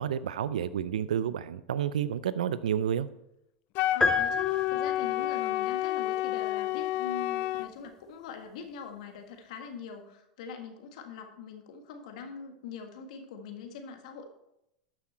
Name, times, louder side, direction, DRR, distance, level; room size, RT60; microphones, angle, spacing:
voice 1, 0.0-3.1, right 9 dB, 80° right, 16 dB, 0.5 m, -30 dB
Wind instrument woodwind instrument, 3.7-7.7, left 15 dB, 50° left, 0.3 m, -30 dB
voice 2, 3.9-14.3, left 5 dB, 70° left, 5 dB, 1.6 m, -43 dB
sound 1, 4.0-5.3, left 3 dB, 15° left, 0.7 m, -29 dB
12.0 x 6.2 x 4.3 m, 0.85 s
hypercardioid pair, 100°, 4 cm